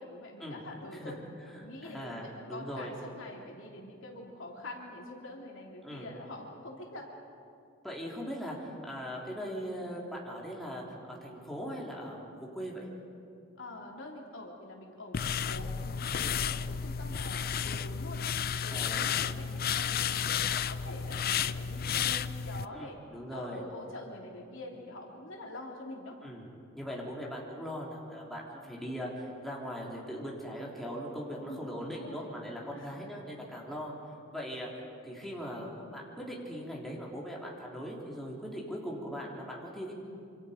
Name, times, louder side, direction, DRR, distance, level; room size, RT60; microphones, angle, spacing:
voice 1, 0.0-7.1 13.6-16.0 16.3-18.2 18.6-23.0 23.3-26.2 31.4-32.3 32.7-33.1, left 1 dB, 65° left, 0 dB, 3.3 m, -45 dB
voice 2, 1.5-2.9 5.8-6.1 7.8-12.9 16.2-16.4 18.7-19.1 22.7-23.6 26.2-33.9 34.3-34.7 35.0-39.9, equal, ahead, -4 dB, 3.6 m, -40 dB
sound 1, 15.1-22.6, left 7 dB, 45° left, 0.5 m, -32 dB
27.0 x 26.0 x 5.2 m, 2.4 s
head